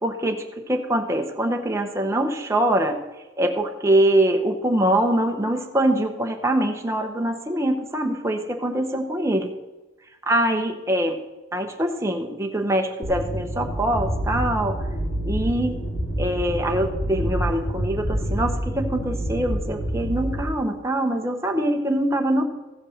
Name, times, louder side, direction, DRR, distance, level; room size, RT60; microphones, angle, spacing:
voice 1, 0.0-3.0 3.4-9.5 10.3-11.2 11.5-14.8 15.2-15.8 16.2-22.4, right 1 dB, 15° right, 3 dB, 0.7 m, -23 dB
sound 1, 13.0-20.4, right 1 dB, 45° left, 2.3 m, -27 dB
14.5 x 5.3 x 6.4 m, 1.1 s
head